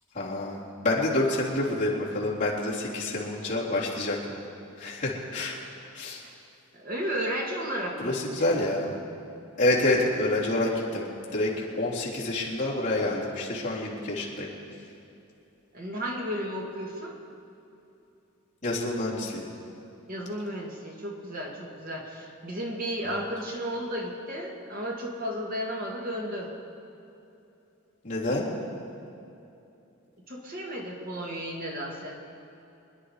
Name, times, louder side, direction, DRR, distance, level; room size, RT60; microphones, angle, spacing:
voice 1, 0.2-4.4 4.8-5.6 5.9-6.2 8.0-8.9 9.6-11.5 11.8-14.5 18.6-19.4 23.0-23.1 28.0-28.5, left 2 dB, 35° left, -7 dB, 3.5 m, -28 dB
voice 2, 6.7-8.5 15.7-17.2 20.1-26.5 30.3-32.1, equal, 45° right, -1 dB, 2.1 m, -33 dB
26.0 x 10.5 x 5.0 m, 2.8 s
head